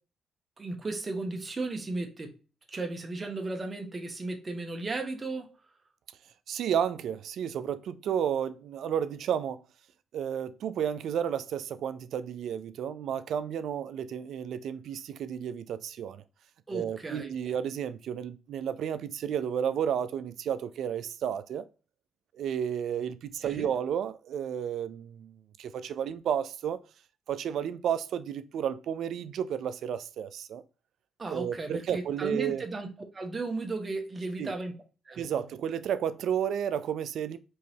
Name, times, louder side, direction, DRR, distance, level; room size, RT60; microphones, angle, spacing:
voice 1, 0.6-2.4 2.7-5.5 16.7-17.3 23.4-23.7 31.2-34.7 35.1-35.4, right 3 dB, 30° right, 1.0 m, -35 dB
voice 2, 6.5-9.6 10.1-16.2 16.7-21.7 22.3-25.3 25.6-26.8 27.3-30.6 31.3-32.7 34.4-34.5 35.2-37.4, right 8 dB, 70° right, 0.4 m, -32 dB
4.6 x 3.1 x 2.7 m
cardioid pair, 90°, 0 cm